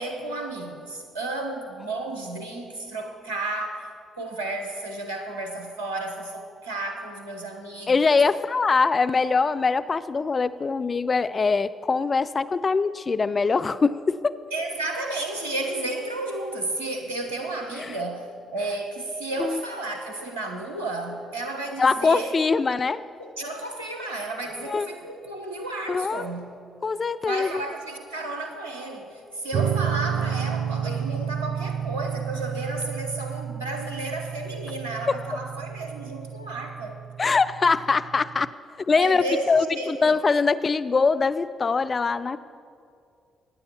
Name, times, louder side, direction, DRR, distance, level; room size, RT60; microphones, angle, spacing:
voice 1, 0.0-3.9 4.2-8.2 14.5-22.3 22.7-22.8 23.2-26.5 27.3-37.0 38.9-40.2, right 2 dB, 80° right, 4 dB, 1.0 m, -32 dB
voice 2, 7.9-14.4 17.8-18.0 19.4-19.6 21.8-23.0 24.7-24.9 25.9-26.2 26.8-27.6 30.8-31.0 35.1-35.2 37.2-38.5 38.8-42.4, left 4 dB, 35° left, 14 dB, 0.3 m, -23 dB
sound 1, 29.5-38.5, right 8 dB, 65° right, 0.4 m, -31 dB
21.0 x 9.6 x 2.9 m, 2.4 s
figure-of-eight pair, 40°, 0 cm